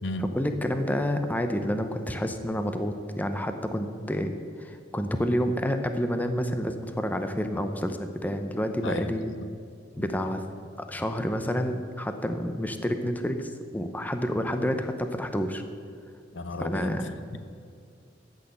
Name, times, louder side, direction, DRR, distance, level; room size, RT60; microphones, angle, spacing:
voice 1, 0.3-9.3 9.9-10.4 10.8-15.6 16.6-17.1, equal, 10° left, 7 dB, 0.7 m, -29 dB
voice 2, 8.8-9.5 10.0-10.1 16.3-17.4, left 1 dB, 65° left, 10 dB, 0.7 m, -35 dB
14.0 x 6.5 x 7.9 m, 2.3 s
head